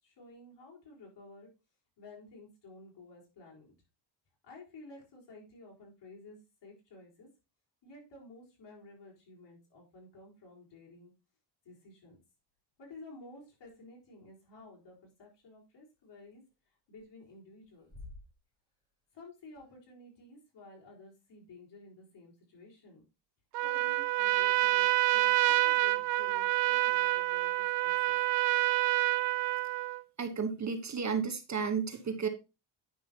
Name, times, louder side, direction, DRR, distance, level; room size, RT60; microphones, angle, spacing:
voice 1, 0.0-1.5 2.0-3.7 4.4-7.3 7.8-11.1 11.6-12.2 12.8-16.4 16.9-17.9 19.1-23.0 23.6-28.2, left 2 dB, 55° left, -2 dB, 4.3 m, -53 dB
sound 1, 12.8-12.9 13.7-13.8 14.5-14.6 16.1-16.6 16.9-17.3 17.6-18.9 19.2-19.3 19.5-19.8, left 2 dB, 10° left, 3.8 m, -52 dB
Trumpet, 23.5-30.0, right 16 dB, 60° right, 0.6 m, -28 dB
voice 2, 30.2-32.3, right 6 dB, 35° right, 8 dB, 1.0 m, -33 dB
9.6 x 6.2 x 2.8 m, 0.28 s
cardioid pair, 80°, 49 cm